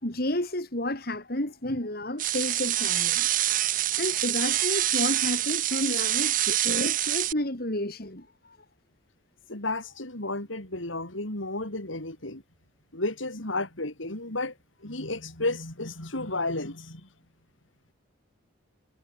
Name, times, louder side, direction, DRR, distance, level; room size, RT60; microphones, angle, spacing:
voice 1, 0.0-3.3 3.9-8.6, left 1 dB, 50° left, 3.9 m, -31 dB
sound 1, 2.2-7.3, right 13 dB, 45° right, 0.6 m, -26 dB
voice 2, 9.5-12.4 12.9-14.5 14.8-17.1, left 2 dB, 85° left, 5.8 m, -32 dB
head